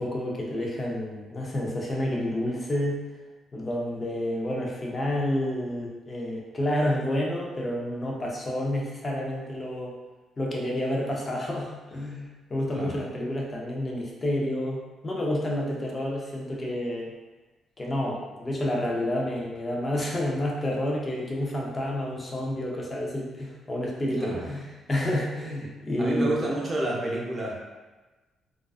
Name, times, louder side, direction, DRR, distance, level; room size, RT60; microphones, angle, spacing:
voice 1, 0.0-3.0 3.5-9.9 10.4-17.1 17.8-24.6 24.9-26.4, left 1 dB, 30° left, -2 dB, 0.5 m, -29 dB
voice 2, 24.2-24.5 26.0-27.6, right 1 dB, 25° right, -4 dB, 0.7 m, -29 dB
2.4 x 2.2 x 2.3 m, 1.2 s
cardioid pair, 90°, 0 cm